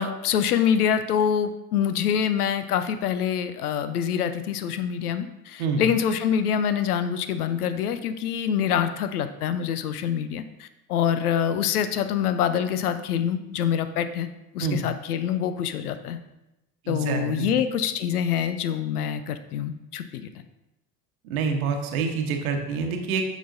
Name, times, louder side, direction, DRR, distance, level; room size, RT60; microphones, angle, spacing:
voice 1, 0.0-14.3 14.5-16.2 16.9-20.3, left 8 dB, 65° left, 11 dB, 0.7 m, -25 dB
voice 2, 16.8-17.5 21.2-23.2, right 5 dB, 60° right, 4 dB, 1.1 m, -27 dB
9.1 x 6.1 x 2.7 m, 0.93 s
figure-of-eight pair, 70°, 48 cm